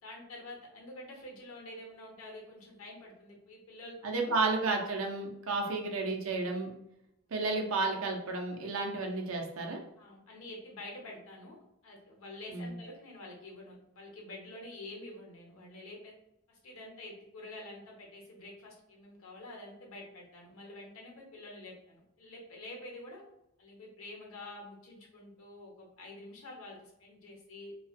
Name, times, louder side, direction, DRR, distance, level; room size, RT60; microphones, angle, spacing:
voice 1, 0.0-4.4 5.7-5.8 7.2-7.3 10.0-16.1 16.5-23.2 23.6-27.8, left 1 dB, 90° left, -1 dB, 0.8 m, -48 dB
voice 2, 4.0-6.7 7.3-9.8 12.5-12.7, right 3 dB, 80° right, 1 dB, 0.6 m, -32 dB
2.4 x 2.3 x 2.5 m, 0.84 s
head